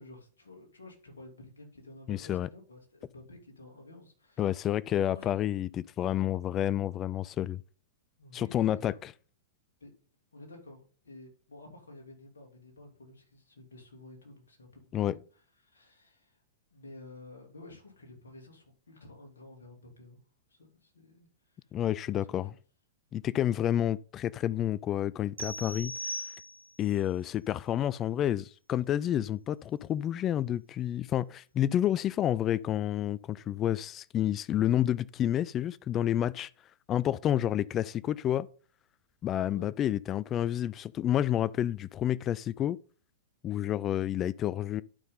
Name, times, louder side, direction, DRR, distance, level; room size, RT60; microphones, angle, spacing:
voice 1, 0.0-4.6 5.1-5.3 8.2-9.0 9.8-9.9 10.3-15.2 15.6-16.4 16.7-20.2 20.5-21.7 22.1-22.5 39.5-39.7, left 2 dB, 75° left, 3.0 m, -51 dB
voice 2, 2.1-2.5 4.4-7.6 8.3-9.1 14.9-15.2 21.7-22.5 23.1-25.9 26.8-36.5 36.9-38.5 39.2-42.8 43.4-44.8, left 11 dB, 30° left, 0.4 m, -29 dB
sound 1, 25.4-26.9, equal, 85° right, 1.3 m, -39 dB
11.5 x 5.5 x 3.9 m
figure-of-eight pair, 100°, 0 cm